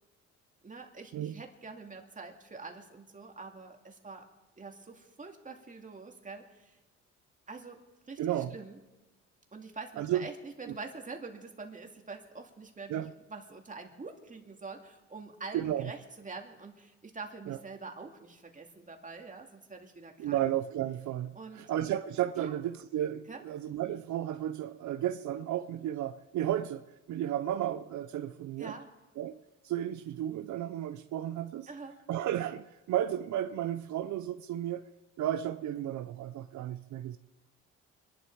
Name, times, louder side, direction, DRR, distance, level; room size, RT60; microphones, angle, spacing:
voice 1, 0.6-4.3 4.6-6.8 7.5-7.8 8.1-8.8 9.5-20.4 21.3-21.7 22.4-22.6 23.3-23.4 28.6-28.9 31.7-32.0, right 4 dB, 25° right, 3 dB, 2.3 m, -45 dB
voice 2, 8.2-8.5 10.0-10.2 12.9-13.1 15.5-15.9 17.5-17.6 20.2-28.7 29.2-29.4 29.6-31.7 32.1-34.8 35.2-37.2, right 11 dB, 70° right, 11 dB, 0.6 m, -33 dB
25.5 x 11.5 x 4.6 m, 1.2 s
cardioid pair, 90°, 30 cm